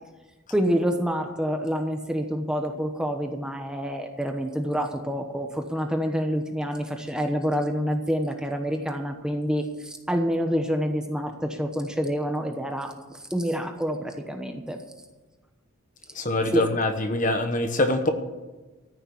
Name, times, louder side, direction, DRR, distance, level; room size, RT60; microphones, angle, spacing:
voice 1, 0.5-14.8 16.5-16.7, equal, 5° right, 4 dB, 1.0 m, -27 dB
voice 2, 16.1-18.1, left 1 dB, 35° left, 7 dB, 1.1 m, -24 dB
14.0 x 6.6 x 9.8 m, 1.2 s
head